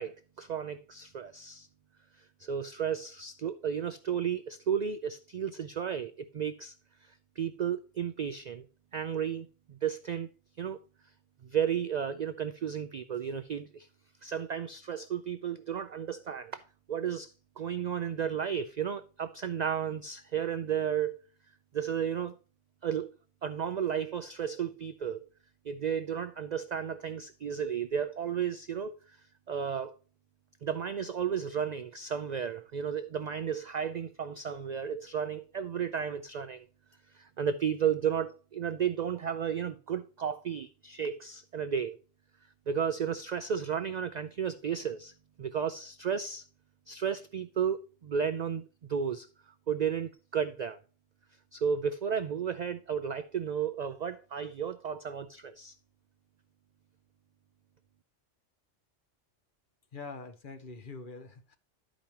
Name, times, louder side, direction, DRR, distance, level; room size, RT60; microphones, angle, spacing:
voice 1, 0.0-1.7 2.2-6.7 7.0-8.6 8.9-10.3 10.6-10.8 11.4-13.9 14.2-16.6 16.9-21.2 21.7-22.3 22.8-23.1 23.4-25.3 25.7-29.2 29.5-29.9 30.6-36.7 37.1-42.0 42.7-45.1 45.4-46.4 46.9-49.3 49.7-50.8 51.5-55.7, right 8 dB, 75° right, 0.4 m, -33 dB
voice 2, 59.9-61.6, left 4 dB, 45° left, 1.0 m, -44 dB
12.5 x 5.1 x 2.9 m
omnidirectional pair, 1.3 m